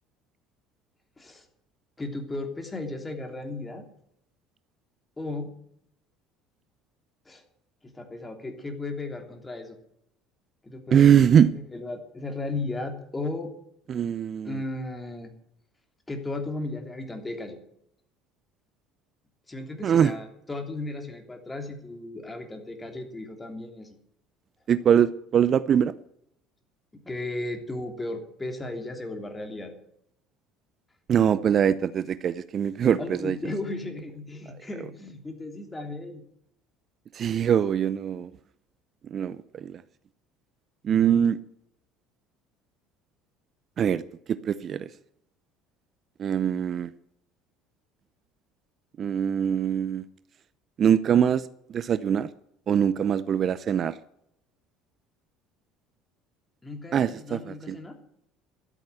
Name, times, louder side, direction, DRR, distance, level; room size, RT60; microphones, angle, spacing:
voice 1, 2.0-3.8 5.2-5.5 7.2-7.4 7.8-9.7 10.6-13.5 14.4-15.3 16.1-17.6 19.5-24.0 26.9-29.7 33.0-36.2 56.6-58.0, left 2 dB, 15° left, 5 dB, 3.1 m, -35 dB
voice 2, 10.9-11.5 13.9-14.6 19.8-20.1 24.7-25.9 31.1-33.4 37.1-38.3 39.1-39.8 40.8-41.4 43.8-44.0 44.3-44.9 46.2-46.9 49.0-50.0 50.8-51.4 51.7-52.3 52.7-54.0 56.9-57.8, right 8 dB, 45° right, 16 dB, 0.6 m, -22 dB
13.0 x 8.5 x 8.2 m, 0.74 s
hypercardioid pair, 65°, 0 cm